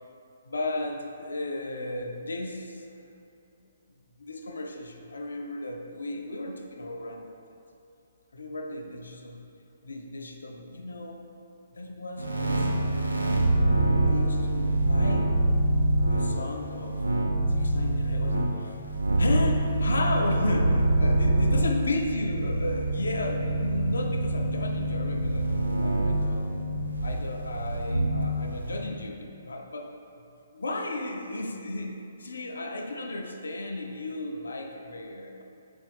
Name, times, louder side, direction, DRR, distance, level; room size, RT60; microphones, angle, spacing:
voice 1, 0.5-2.8 4.2-7.4 8.3-9.4 9.8-11.3 11.7-13.5 14.0-15.3 16.1-17.0 17.5-18.8 19.2-26.5 27.0-29.9 30.5-35.4, left 2 dB, 70° left, 3 dB, 0.3 m, -34 dB
sound 1, 12.2-28.8, right 1 dB, 85° right, 0.4 m, -26 dB
3.9 x 2.4 x 3.3 m, 2.7 s
figure-of-eight pair, 130°, 0 cm